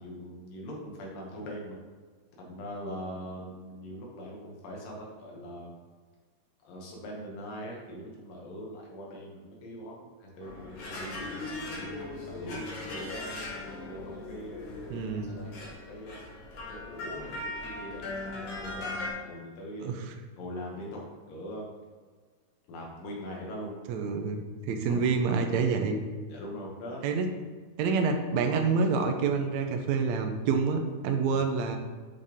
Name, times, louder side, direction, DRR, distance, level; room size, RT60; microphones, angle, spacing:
voice 1, 0.0-1.8 2.4-5.7 6.6-12.0 12.3-13.2 13.9-16.2 16.7-18.9 19.2-19.9 20.4-21.8 22.7-23.7 24.9-25.1 26.3-27.0 31.3-31.4, equal, 85° left, -2 dB, 3.3 m, -42 dB
sound 1, 10.4-19.1, left 2 dB, 55° left, 2.4 m, -39 dB
voice 2, 14.9-15.4 19.8-20.0 23.9-26.0 27.0-27.3 27.8-31.8, right 5 dB, 80° right, 5 dB, 1.7 m, -27 dB
8.7 x 5.5 x 3.6 m, 1.5 s
omnidirectional pair, 3.9 m